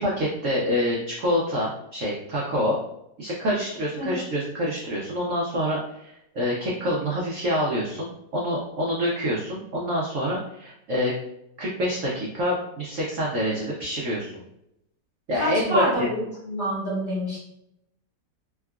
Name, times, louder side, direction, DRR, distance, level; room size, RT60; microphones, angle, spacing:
voice 1, 0.0-2.8 3.2-11.1 11.6-14.4 15.3-16.1, equal, 70° right, -4 dB, 0.7 m, -26 dB
voice 2, 15.3-17.4, equal, 50° left, -8 dB, 1.9 m, -27 dB
3.6 x 2.3 x 2.3 m, 0.80 s
omnidirectional pair, 2.0 m